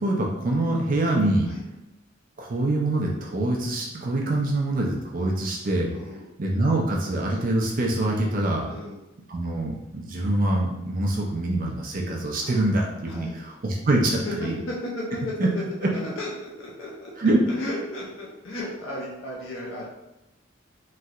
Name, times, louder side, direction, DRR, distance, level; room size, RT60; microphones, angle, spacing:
voice 1, 0.0-1.5 2.4-5.9 6.4-8.7 9.3-14.6 15.4-15.5 15.8-15.9 17.2-17.4, right 2 dB, 45° right, -1 dB, 0.4 m, -25 dB
voice 2, 5.9-6.3 8.6-9.0 12.4-12.6 13.0-13.4 14.2-15.6 15.9-17.1 17.5-19.9, left 1 dB, 65° left, -4 dB, 0.5 m, -34 dB
3.1 x 2.7 x 2.4 m, 0.93 s
head